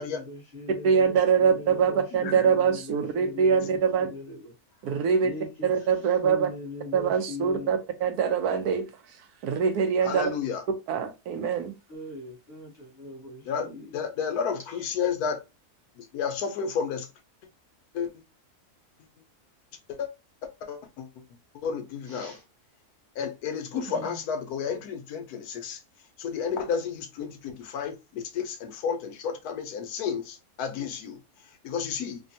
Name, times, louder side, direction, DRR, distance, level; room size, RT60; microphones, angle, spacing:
voice 1, 0.0-7.7 11.9-14.1 14.7-14.8 22.0-22.4 23.7-24.1, left 2 dB, 30° left, 1.2 m, -41 dB
voice 2, 0.8-4.1 4.8-5.3 5.6-6.5 6.9-8.9 9.4-10.3 10.9-11.7 23.8-23.9, right 6 dB, 85° right, 1.2 m, -24 dB
voice 3, 2.1-2.5 10.0-10.6 13.5-13.7 13.9-15.4 16.0-17.1 17.9-18.1 19.9-20.1 20.6-21.1 21.6-22.3 23.2-25.8 26.2-31.2 31.6-32.2, left 6 dB, 80° left, 1.2 m, -31 dB
3.4 x 2.2 x 2.6 m
omnidirectional pair, 1.6 m